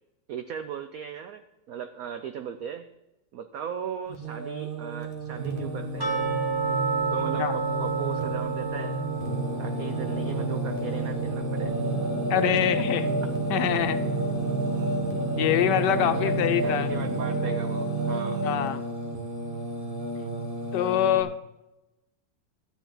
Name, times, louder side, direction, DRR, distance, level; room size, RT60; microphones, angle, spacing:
voice 1, 0.3-2.9 3.3-6.3 7.1-9.0 9.6-11.7 16.0-16.4 16.6-18.4, right 8 dB, 70° right, 8 dB, 0.8 m, -37 dB
Singing, 4.1-21.2, right 2 dB, 30° right, 1.2 m, -30 dB
sound 1, 6.0-12.9 13.1-13.2 13.7-13.8 14.4-14.5, right 5 dB, 15° right, 1.2 m, -32 dB
voice 2, 12.3-13.1 13.5-14.0 15.4-16.9 18.4-18.8 20.7-21.3, left 11 dB, 70° left, 11 dB, 1.2 m, -25 dB
12.5 x 9.4 x 3.8 m, 0.98 s
omnidirectional pair, 2.0 m